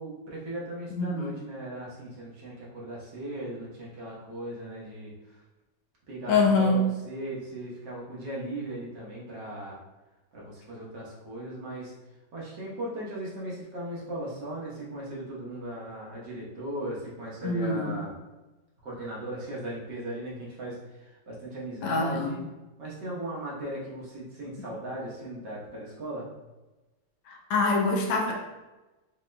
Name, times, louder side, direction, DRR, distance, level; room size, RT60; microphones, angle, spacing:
voice 1, 0.0-5.4 6.1-9.8 10.3-11.9 12.3-18.1 18.8-22.4 22.8-26.3, right 1 dB, 65° right, -5 dB, 1.7 m, -38 dB
voice 2, 1.0-1.4 6.3-6.9 17.4-17.9 21.8-22.4 27.3-28.3, left 3 dB, 80° left, 0 dB, 1.4 m, -25 dB
6.3 x 2.8 x 2.2 m, 1.1 s
omnidirectional pair, 2.1 m